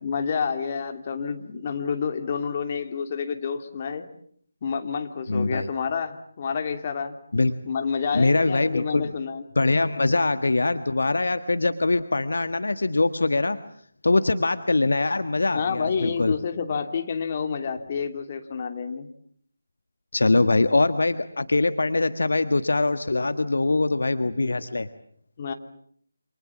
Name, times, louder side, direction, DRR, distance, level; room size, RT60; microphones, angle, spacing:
voice 1, 0.0-4.0 4.6-7.2 7.6-9.4 15.5-19.1 25.4-25.5, left 6 dB, 30° left, 6 dB, 2.8 m, -29 dB
voice 2, 5.3-5.7 7.3-7.5 8.1-9.1 9.5-13.6 14.0-16.3 20.1-24.9, left 2 dB, 60° left, 11 dB, 1.5 m, -23 dB
29.0 x 27.5 x 7.4 m, 0.63 s
figure-of-eight pair, 155°, 0 cm